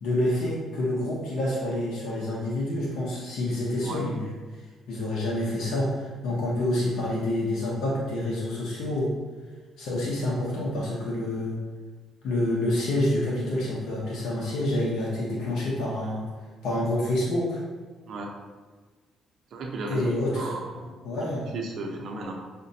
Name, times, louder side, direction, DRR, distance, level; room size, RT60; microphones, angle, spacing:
voice 1, 0.0-4.3 4.9-9.1 9.8-11.6 12.2-16.2 16.6-17.6 19.9-20.5 21.0-21.5, left 1 dB, 75° left, -6 dB, 0.7 m, -27 dB
voice 2, 19.5-21.3 21.5-22.3, right 2 dB, 65° right, 1 dB, 0.6 m, -35 dB
4.9 x 2.2 x 2.7 m, 1.4 s
cardioid pair, 110°, 0 cm